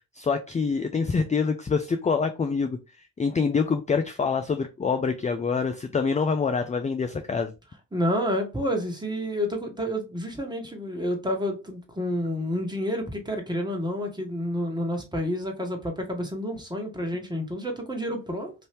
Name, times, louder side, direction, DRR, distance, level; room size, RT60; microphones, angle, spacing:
voice 1, 0.1-2.8 3.2-7.5, left 5 dB, 20° left, 0.4 m, -25 dB
voice 2, 7.9-18.5, equal, 10° right, 1.4 m, -29 dB
3.0 x 2.6 x 3.4 m
hypercardioid pair, 45°, 42 cm